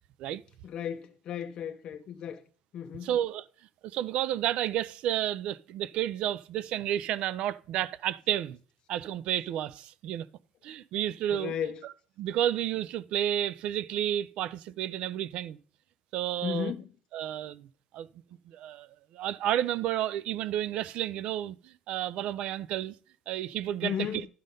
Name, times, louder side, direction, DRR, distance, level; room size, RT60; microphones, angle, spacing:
voice 1, 0.6-2.4 2.7-3.1 11.3-11.8 16.4-16.9 23.8-24.3, left 9 dB, 45° left, 0.5 m, -34 dB
voice 2, 3.0-3.5 3.8-8.6 8.9-10.3 10.6-11.5 11.8-11.9 12.2-15.6 16.1-16.7 17.1-17.7 17.9-18.1 18.5-22.9 23.3-24.2, right 11 dB, 60° right, 0.4 m, -31 dB
11.0 x 3.8 x 5.2 m
cardioid pair, 160°, 2 cm